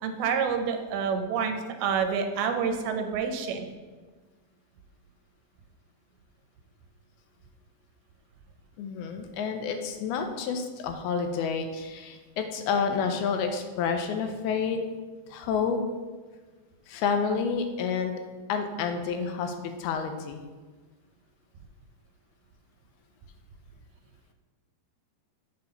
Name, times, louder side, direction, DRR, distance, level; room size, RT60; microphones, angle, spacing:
voice 1, 0.0-3.6, right 6 dB, 80° right, 6 dB, 2.5 m, -28 dB
voice 2, 8.8-14.8 15.3-15.8 16.9-18.1 18.5-19.5 19.8-20.4, left 6 dB, 85° left, 6 dB, 2.5 m, -29 dB
7.1 x 5.7 x 3.9 m, 1.4 s
omnidirectional pair, 4.4 m